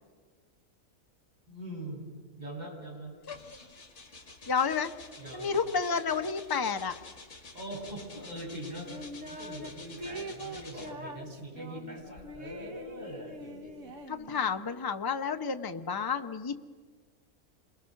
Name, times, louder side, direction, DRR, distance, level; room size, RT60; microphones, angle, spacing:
voice 1, 1.5-2.1 2.4-3.1 5.2-5.7 7.5-8.9 9.3-14.0, right 1 dB, 30° right, -3 dB, 8.0 m, -42 dB
sound 1, 3.2-11.1 12.0-14.5, left 3 dB, 60° left, 2.5 m, -50 dB
voice 2, 4.5-4.9 5.3-7.0 14.1-16.6, left 6 dB, 20° left, 7 dB, 0.8 m, -30 dB
sound 2, 8.9-9.7 10.0-14.6, right 1 dB, 65° right, 2.0 m, -43 dB
28.5 x 22.0 x 6.5 m, 1.5 s
omnidirectional pair, 1.4 m